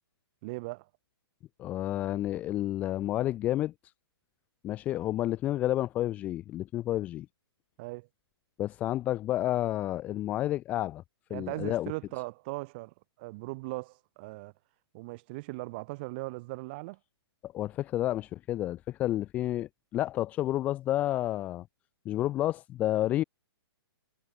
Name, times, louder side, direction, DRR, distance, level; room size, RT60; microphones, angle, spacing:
voice 1, 0.4-0.9 7.8-8.1 11.3-14.5 14.9-17.0, right 25 dB, 25° right, 7.2 m, -39 dB
voice 2, 1.6-3.7 4.6-7.3 8.6-11.0 11.3-11.9 17.4-21.6 22.0-23.2, left 14 dB, 10° left, 0.9 m, -30 dB
hypercardioid pair, 180°, 14 cm